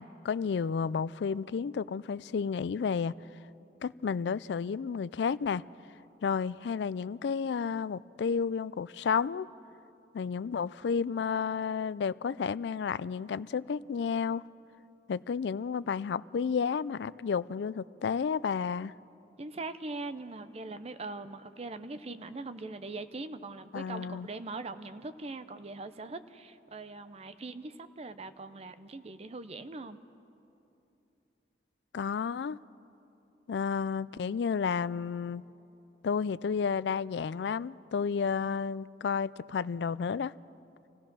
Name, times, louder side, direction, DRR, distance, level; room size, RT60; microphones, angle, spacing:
voice 1, 0.0-3.1 3.8-5.6 6.2-9.5 10.1-14.4 15.1-18.9 23.7-24.3 31.9-32.6 33.5-35.4 36.0-40.3, left 6 dB, 65° left, 0.3 m, -31 dB
voice 2, 19.4-30.0, right 3 dB, 35° right, 0.6 m, -41 dB
27.0 x 16.5 x 6.1 m
head